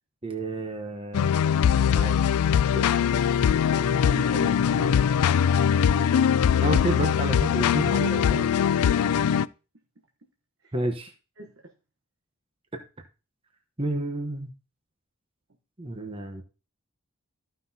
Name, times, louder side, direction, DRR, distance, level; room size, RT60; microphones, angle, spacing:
voice 1, 0.2-1.3 1.9-2.2 2.7-2.8 6.6-8.5 10.7-11.1 12.7-12.8 13.8-14.5 15.8-16.4, right 2 dB, 25° right, 1.0 m, -30 dB
sound 1, 1.1-9.4, left 8 dB, 90° left, 0.3 m, -22 dB
voice 2, 3.7-5.0 8.8-9.4 10.6-10.7 11.4-11.7, right 2 dB, 65° right, 1.1 m, -41 dB
14.5 x 5.8 x 2.8 m
head